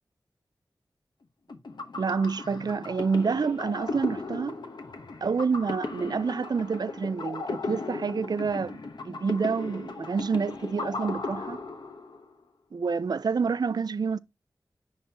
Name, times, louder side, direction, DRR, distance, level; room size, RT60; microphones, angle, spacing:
sound 1, 1.5-12.3, left 3 dB, 75° left, 1.0 m, -37 dB
voice 1, 2.0-4.6 5.2-11.6 12.7-14.2, right 5 dB, 65° right, 0.4 m, -28 dB
10.5 x 3.7 x 2.9 m
wide cardioid pair, 50°, 8 cm